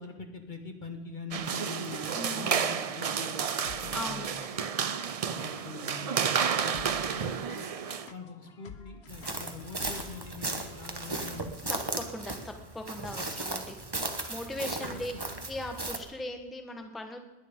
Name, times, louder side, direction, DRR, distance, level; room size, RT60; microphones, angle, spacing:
voice 1, 0.0-3.5 3.8-4.5 4.8-4.9 5.3-7.7 8.1-11.6 14.8-15.0, left 4 dB, 50° left, 5 dB, 1.8 m, -44 dB
sound 1, 1.3-8.1, right 7 dB, 45° right, 0.5 m, -31 dB
sound 2, 1.6-11.4, left 5 dB, 80° left, 1.3 m, -52 dB
voice 2, 2.1-2.5 3.9-4.3 11.7-13.8 14.3-15.1 15.4-17.2, left 1 dB, ahead, 5 dB, 1.2 m, -39 dB
sound 3, 9.1-16.0, right 2 dB, 25° right, 1.3 m, -36 dB
21.0 x 9.6 x 5.4 m, 1.2 s
omnidirectional pair, 1.1 m